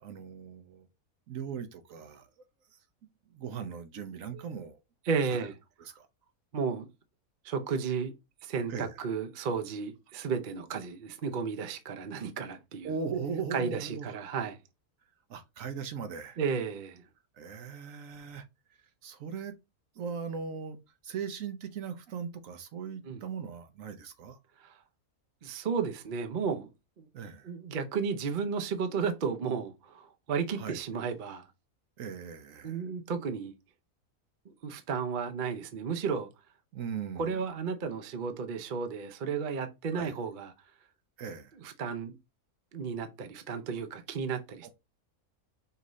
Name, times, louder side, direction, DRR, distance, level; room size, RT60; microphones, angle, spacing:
voice 1, 0.0-0.9 1.3-2.3 3.3-4.8 5.8-6.1 8.7-9.0 12.8-14.1 15.3-16.4 17.4-18.4 19.0-19.5 20.0-20.8 21.0-24.4 27.1-27.5 30.5-30.8 32.0-32.8 36.7-37.4 39.9-40.1 41.2-41.6 44.6-44.7, right 6 dB, 65° right, 1.0 m, -39 dB
voice 2, 5.1-5.5 6.5-6.9 7.4-8.1 8.4-12.9 13.5-14.6 16.4-17.1 23.0-23.2 24.6-24.8 25.4-26.7 27.0-27.1 27.4-31.5 32.6-33.5 34.5-36.3 37.2-40.5 41.6-42.1 42.7-44.7, right 5 dB, 50° right, 0.6 m, -33 dB
5.4 x 2.6 x 3.0 m
omnidirectional pair, 1.6 m